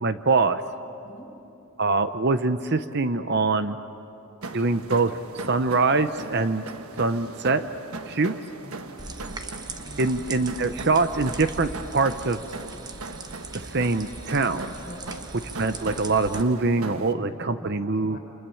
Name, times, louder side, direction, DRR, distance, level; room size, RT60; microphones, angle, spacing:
voice 1, 0.0-0.6 1.8-3.8 4.5-5.1 5.5-6.6 7.0-7.6 8.1-8.3 10.0-12.4 13.7-14.7 15.6-18.2, right 3 dB, 50° right, 10 dB, 0.8 m, -23 dB
sound 1, 4.4-17.1, right 3 dB, 85° right, 1.3 m, -39 dB
voice 2, 8.6-9.1 9.7-10.0 14.7-15.1 16.8-17.7 18.0-18.2, equal, 40° left, 2 dB, 4.7 m, -45 dB
sound 2, 9.0-16.4, right 3 dB, 20° right, 1.0 m, -40 dB
29.0 x 27.0 x 7.1 m, 2.9 s
head